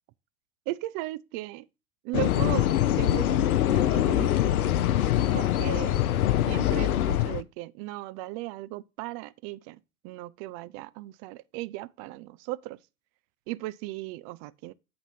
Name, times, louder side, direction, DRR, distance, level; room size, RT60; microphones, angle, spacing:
voice 1, 0.7-1.7 2.0-2.7 3.0-4.7 5.3-6.0 6.5-12.8 13.5-14.7, right 18 dB, 45° right, 0.5 m, -37 dB
sound 1, 2.1-7.4, left 12 dB, 80° left, 0.6 m, -24 dB
8.6 x 4.0 x 5.7 m
hypercardioid pair, 80°, 43 cm